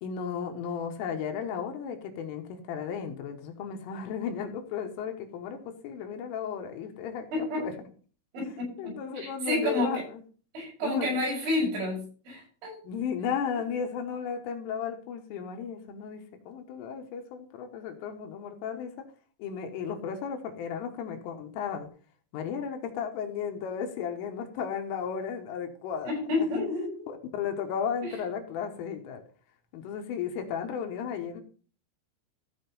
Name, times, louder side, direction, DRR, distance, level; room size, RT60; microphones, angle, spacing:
voice 1, 0.0-7.7 8.8-10.2 10.8-11.2 12.8-19.1 19.4-21.9 22.3-26.1 26.4-26.5 27.1-29.2 29.7-31.4, left 7 dB, 75° left, 4 dB, 3.7 m, -34 dB
voice 2, 7.3-7.7 8.3-9.9 10.5-12.8 26.0-27.1, left 1 dB, 65° right, -3 dB, 8.8 m, -30 dB
15.0 x 5.1 x 5.4 m, 0.40 s
omnidirectional pair, 6.0 m